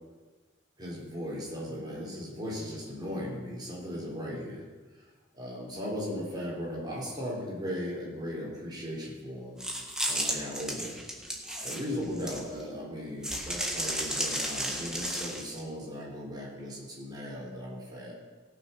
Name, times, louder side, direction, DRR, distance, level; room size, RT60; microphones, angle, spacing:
voice 1, 0.8-4.6 5.3-9.6 10.1-11.0 11.6-18.1, equal, 20° right, -4 dB, 3.8 m, -37 dB
sound 1, 9.6-12.7 13.2-15.6, right 1 dB, 5° right, 1.5 m, -33 dB
18.0 x 6.2 x 5.8 m, 1.3 s
head